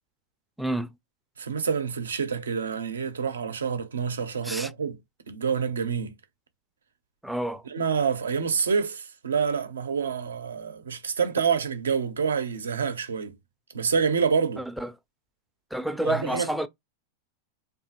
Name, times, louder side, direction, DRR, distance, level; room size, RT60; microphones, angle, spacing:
voice 1, 0.6-0.9 4.4-4.7 7.2-7.6 14.8-14.9 15.7-16.7, right 1 dB, ahead, 0.3 m, -28 dB
voice 2, 1.4-5.0 5.3-6.1 7.6-13.4 13.7-14.6 16.0-16.5, right 6 dB, 85° right, 0.5 m, -27 dB
2.8 x 2.3 x 2.8 m
hypercardioid pair, 105°, 0 cm